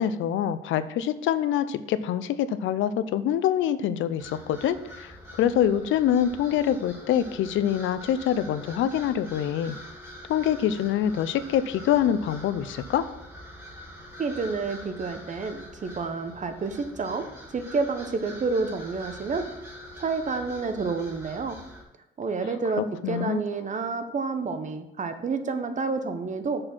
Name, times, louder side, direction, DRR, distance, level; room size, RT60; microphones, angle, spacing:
voice 1, 0.0-9.8 10.3-13.1 23.0-23.4, left 10 dB, 80° left, 13 dB, 0.5 m, -25 dB
sound 1, 4.2-21.8, left 1 dB, 15° right, 2.6 m, -44 dB
voice 2, 14.2-19.5 20.0-21.6 22.2-26.6, right 4 dB, 40° right, 8 dB, 0.9 m, -29 dB
6.5 x 4.4 x 6.0 m, 0.90 s
cardioid pair, 90°, 20 cm